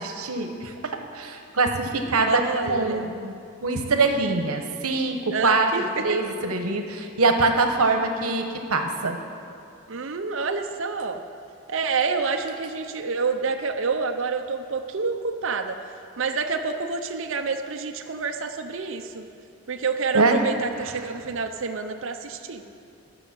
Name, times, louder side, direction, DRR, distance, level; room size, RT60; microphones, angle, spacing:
voice 1, 0.0-2.4 2.7-3.3 3.6-9.2 20.1-20.4, right 3 dB, 80° right, 5 dB, 1.1 m, -24 dB
voice 2, 2.3-3.1 5.3-6.3 9.9-11.2 11.7-15.8 16.2-19.3 19.7-22.6, right 4 dB, 60° right, 5 dB, 0.6 m, -28 dB
13.5 x 6.4 x 7.5 m, 2.4 s
head